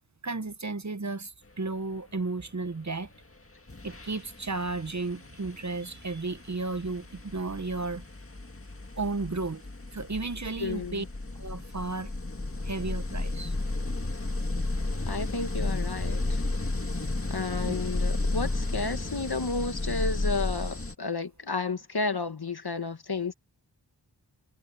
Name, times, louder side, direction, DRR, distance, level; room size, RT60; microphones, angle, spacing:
voice 1, 0.2-3.1 3.8-8.0 9.0-9.6 9.9-11.0 11.3-12.1 12.6-13.5 17.7-17.8, right 3 dB, 40° right, 1.0 m, -33 dB
sound 1, 3.1-3.3 3.7-20.9, left 2 dB, 30° left, 1.9 m, -33 dB
voice 2, 10.6-11.1 15.1-16.4 17.3-23.3, left 3 dB, 60° left, 1.8 m, -32 dB
wide cardioid pair, 45°, 44 cm